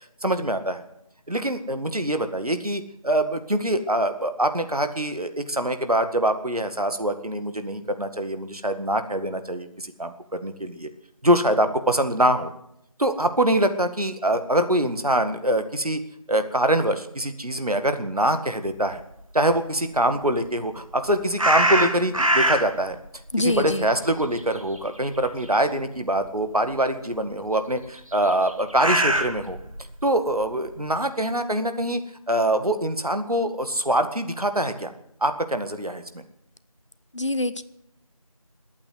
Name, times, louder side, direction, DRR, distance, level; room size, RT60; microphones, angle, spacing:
voice 1, 0.2-0.8 1.3-10.9 11.2-12.5 13.0-16.0 16.3-19.0 19.3-23.0 23.4-29.6 30.0-32.0 32.3-34.9 35.2-36.0, right 1 dB, 85° right, 1.9 m, -24 dB
sound 1, 21.4-22.9 23.3-25.0 25.2-25.4 26.2-26.3 28.1-29.9, right 1 dB, 65° right, 2.2 m, -23 dB
voice 2, 23.3-23.9 37.1-37.6, left 2 dB, 55° left, 0.9 m, -25 dB
20.0 x 8.8 x 8.0 m
figure-of-eight pair, 175°, 19 cm